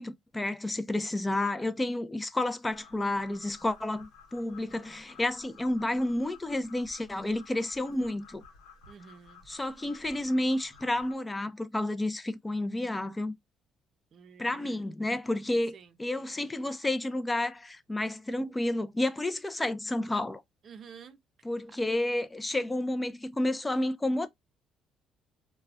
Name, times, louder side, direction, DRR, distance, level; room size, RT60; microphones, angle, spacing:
voice 1, 0.0-8.4 9.5-13.3 14.4-20.4 21.4-24.3, left 1 dB, 15° left, 0.4 m, -31 dB
sound 1, 2.7-11.1, left 5 dB, 90° left, 0.9 m, -54 dB
voice 2, 8.9-9.4 14.1-14.8 15.7-15.9 20.6-21.2, right 6 dB, 55° right, 0.5 m, -50 dB
2.3 x 2.2 x 3.4 m
supercardioid pair, 80°, 0 cm